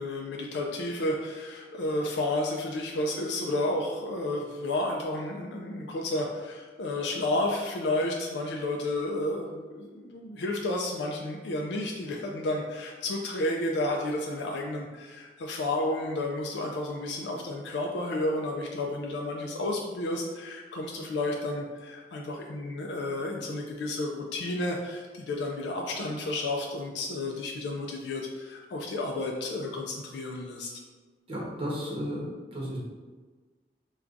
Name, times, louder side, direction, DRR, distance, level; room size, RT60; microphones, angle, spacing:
voice 1, 0.0-30.7, left 2 dB, 70° left, 0 dB, 0.4 m, -31 dB
voice 2, 31.3-32.8, equal, 35° right, -7 dB, 1.0 m, -34 dB
4.5 x 2.3 x 2.5 m, 1.4 s
head